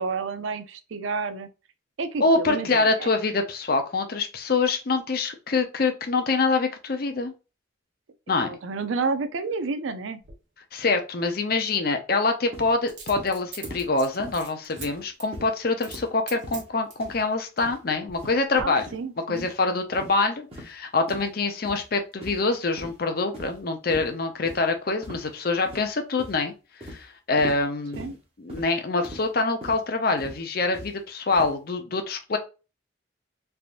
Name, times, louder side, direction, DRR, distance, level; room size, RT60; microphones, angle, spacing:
voice 1, 0.0-1.5 2.0-3.1 8.3-10.2 18.6-19.5 28.0-28.2, right 4 dB, 90° right, 0.5 m, -30 dB
voice 2, 2.2-7.3 8.3-8.6 10.7-18.9 19.3-26.5 26.9-32.4, left 3 dB, 50° left, 0.6 m, -25 dB
Coin (dropping), 10.2-10.4 12.9-14.9 15.2-15.4 15.8-16.0 16.3-17.1 17.7-18.3 18.6-18.7, right 5 dB, 70° right, 1.2 m, -41 dB
sound 1, 12.5-12.7 13.1-13.3 13.6-13.9 14.2-14.4 14.8-15.0 15.3-15.5 15.9-16.1 16.4-16.7 17.0-17.2 17.6-17.8 18.1-18.4 18.8-19.0 19.4-19.5 19.9-20.1 20.5-20.7 21.1-21.3 21.6-21.8 22.2-22.5 22.8-23.0 23.3-23.6 23.9-24.1 24.5-24.6 25.0-25.3 25.7-25.9 26.2-26.4 26.8-27.0 27.4-27.6 27.9-28.1 28.5-28.7 29.0-29.3 29.6-29.8 30.2-30.4 30.7-30.9 31.3-31.5, equal, 30° right, 1.1 m, -40 dB
3.4 x 2.7 x 2.4 m
head